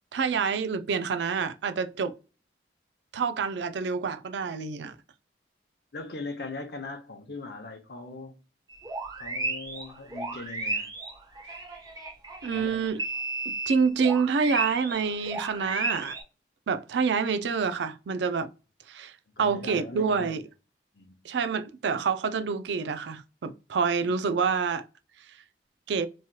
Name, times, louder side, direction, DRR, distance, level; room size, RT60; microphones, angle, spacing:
voice 1, 0.1-2.1 3.1-4.9 12.4-13.0 13.7-16.1 16.7-18.5 18.9-20.4 21.2-24.9 25.9-26.1, right 5 dB, 80° right, 0.4 m, -27 dB
voice 2, 5.9-8.4 9.2-10.9 12.5-13.0 19.4-20.4 20.9-21.1, left 3 dB, 65° left, 0.7 m, -40 dB
sound 1, 8.7-12.6 13.0-16.2, right 2 dB, 20° right, 0.8 m, -33 dB
3.0 x 2.9 x 2.2 m
head